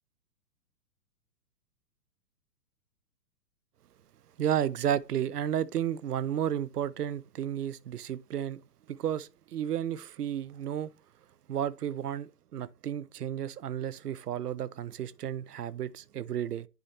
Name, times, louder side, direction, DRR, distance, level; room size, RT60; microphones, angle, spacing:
voice 1, 4.4-8.6 8.9-10.9 11.5-16.7, right 10 dB, 70° right, 0.5 m, -32 dB
10.5 x 4.3 x 2.8 m
figure-of-eight pair, 115°, 48 cm